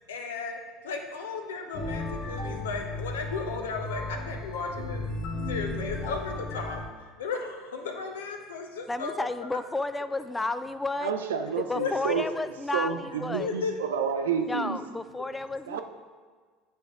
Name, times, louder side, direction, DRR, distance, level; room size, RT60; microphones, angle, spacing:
voice 1, 0.1-5.0 5.5-6.8 7.2-9.5 11.7-12.2 13.4-13.8 15.2-15.3, left 5 dB, 75° left, 4 dB, 0.7 m, -35 dB
sound 1, 1.7-6.8, left 2 dB, 60° left, 1.1 m, -34 dB
voice 2, 8.9-11.1 11.6-13.5 14.5-15.8, left 2 dB, 15° left, 12 dB, 0.3 m, -32 dB
voice 3, 11.0-12.3 12.7-14.8 15.7-15.8, right 7 dB, 75° right, 7 dB, 0.5 m, -30 dB
9.5 x 3.7 x 3.5 m, 1.5 s
figure-of-eight pair, 70°, 0 cm